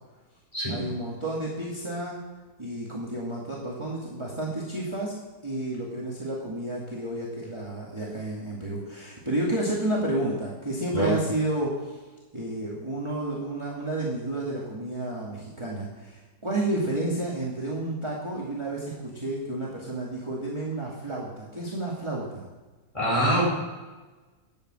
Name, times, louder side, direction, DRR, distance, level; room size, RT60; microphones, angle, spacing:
voice 1, 0.7-2.2 2.6-5.2 5.4-12.0 12.3-22.5, right 1 dB, 20° right, -5 dB, 2.2 m, -31 dB
voice 2, 22.9-23.5, right 1 dB, 20° left, -5 dB, 5.7 m, -24 dB
12.0 x 8.6 x 7.6 m, 1.3 s
omnidirectional pair, 1.7 m